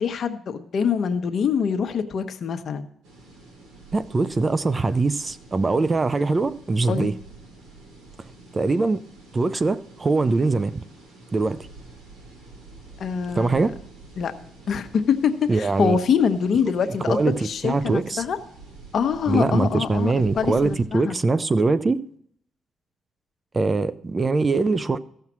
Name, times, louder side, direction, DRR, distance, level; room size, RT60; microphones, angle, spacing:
voice 1, 0.0-2.9 6.9-7.1 13.0-13.6 14.2-14.3 14.7-18.4 18.9-21.1, left 7 dB, 55° left, 1.0 m, -24 dB
sound 1, 3.0-20.8, right 3 dB, 90° right, 3.5 m, -47 dB
voice 2, 3.9-7.1 8.5-9.0 9.3-10.8 11.3-11.7 13.4-13.7 15.5-16.0 17.1-18.2 19.3-22.0 23.5-25.0, right 3 dB, 30° right, 0.5 m, -22 dB
14.5 x 5.7 x 6.1 m
cardioid pair, 90°, 0 cm